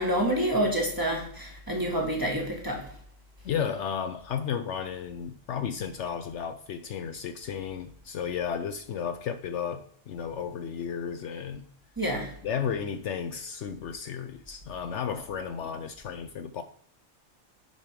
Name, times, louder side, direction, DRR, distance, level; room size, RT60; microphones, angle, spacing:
voice 1, 0.0-2.8 12.0-12.3, right 1 dB, 15° right, 1.8 m, -28 dB
voice 2, 3.4-11.7 12.4-16.6, left 7 dB, 70° left, 0.8 m, -33 dB
9.6 x 5.3 x 4.7 m
omnidirectional pair, 1.3 m